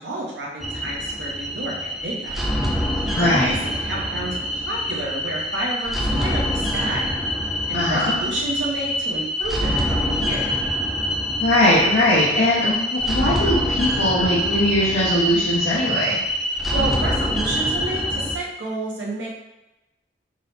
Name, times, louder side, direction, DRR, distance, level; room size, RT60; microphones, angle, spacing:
voice 1, 0.0-2.4 3.1-7.2 7.7-10.6 16.5-19.3, right 1 dB, 80° right, -4 dB, 1.0 m, -30 dB
sound 1, 0.6-18.4, equal, ahead, 0.3 m, -25 dB
voice 2, 3.1-3.5 7.7-8.1 11.4-16.2, left 1 dB, 85° left, -9 dB, 0.9 m, -20 dB
3.7 x 2.9 x 3.3 m, 0.97 s
head